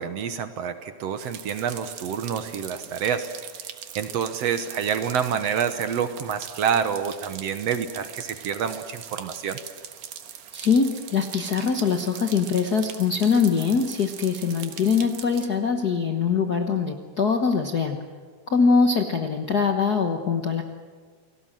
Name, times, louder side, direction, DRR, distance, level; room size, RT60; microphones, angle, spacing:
voice 1, 0.0-3.3 4.0-9.6, right 7 dB, 65° right, 9 dB, 2.0 m, -27 dB
sound 1, 1.2-15.5, right 9 dB, 90° right, 2.8 m, -41 dB
voice 2, 10.5-18.0 18.5-20.6, left 5 dB, 50° left, 4 dB, 1.2 m, -23 dB
29.5 x 18.5 x 7.6 m, 1.6 s
omnidirectional pair, 3.4 m